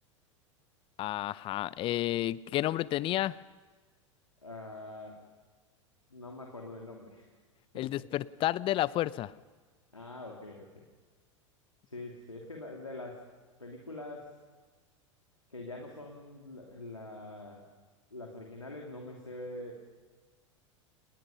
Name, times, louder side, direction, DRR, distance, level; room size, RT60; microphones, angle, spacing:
voice 1, 1.0-3.4 7.7-9.3, left 14 dB, 35° left, 21 dB, 0.6 m, -31 dB
voice 2, 4.4-5.2 6.1-7.3 7.7-8.1 9.9-10.8 11.9-13.3 13.6-14.4 15.5-17.6 18.1-20.0, left 2 dB, 85° left, 1 dB, 2.6 m, -44 dB
29.0 x 19.5 x 5.7 m, 1.4 s
figure-of-eight pair, 85°, 16 cm